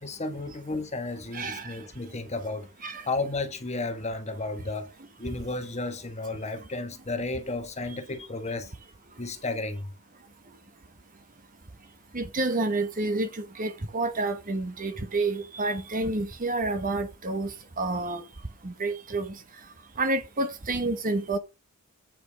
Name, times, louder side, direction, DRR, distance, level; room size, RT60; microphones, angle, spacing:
voice 1, 0.0-2.7 3.1-4.9 5.2-8.7 9.2-9.9, left 2 dB, 30° left, 1.3 m, -33 dB
voice 2, 1.3-1.8 2.8-3.0 12.1-18.2 18.6-19.3 20.0-21.4, right 2 dB, 40° right, 1.2 m, -29 dB
8.8 x 5.4 x 5.2 m
head